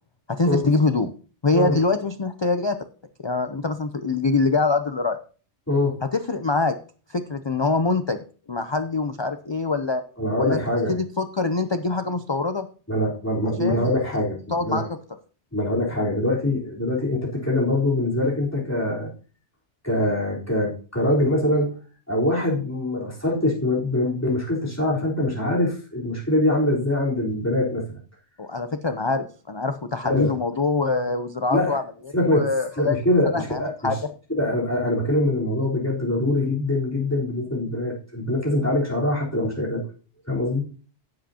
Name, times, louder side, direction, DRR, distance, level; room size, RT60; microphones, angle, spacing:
voice 1, 0.3-1.1 1.4-2.8 3.2-5.2 6.1-6.7 7.1-8.2 8.5-10.0 10.4-10.6 10.9-12.7 13.6-14.2 14.5-14.8 28.4-31.8 32.2-33.0 33.3-34.0, left 3 dB, 30° left, 8 dB, 0.5 m, -24 dB
voice 2, 1.5-1.8 5.7-6.0 10.2-11.0 12.9-14.9 15.5-19.1 19.8-21.7 22.1-27.8 30.0-30.3 31.5-31.8 32.1-32.5 32.8-34.0 34.3-39.8 40.3-40.7, left 1 dB, 15° left, -4 dB, 3.9 m, -23 dB
16.0 x 7.7 x 2.9 m, 0.38 s
omnidirectional pair, 1.2 m